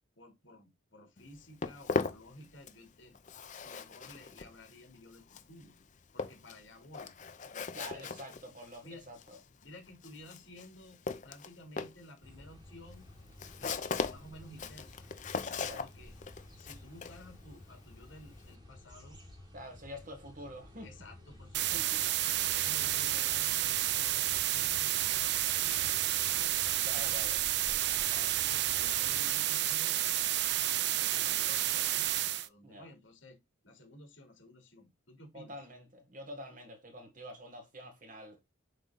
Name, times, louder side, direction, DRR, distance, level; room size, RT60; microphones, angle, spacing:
voice 1, 0.2-3.1 3.6-5.7 6.1-7.1 7.5-8.1 8.8-9.0 9.6-11.0 11.2-13.1 13.6-15.1 15.7-16.1 16.6-19.2 20.8-22.1 22.5-27.1 28.1-30.3 30.8-33.4 33.6-35.7, left 1 dB, 70° left, 2.9 m, -54 dB
Walk footsteps, 1.2-2.9 3.1-18.5, left 4 dB, 40° left, 0.6 m, -40 dB
voice 2, 7.7-9.4 15.6-15.8 19.5-20.9 21.7-22.0 26.8-27.4 28.1-28.3 32.6-32.9 35.3-38.4, equal, 40° right, 1.5 m, -47 dB
sound 1, 12.2-29.3, left 1 dB, 20° right, 2.2 m, -53 dB
sound 2, 21.5-32.5, right 13 dB, 55° right, 0.4 m, -30 dB
7.7 x 3.7 x 3.8 m
head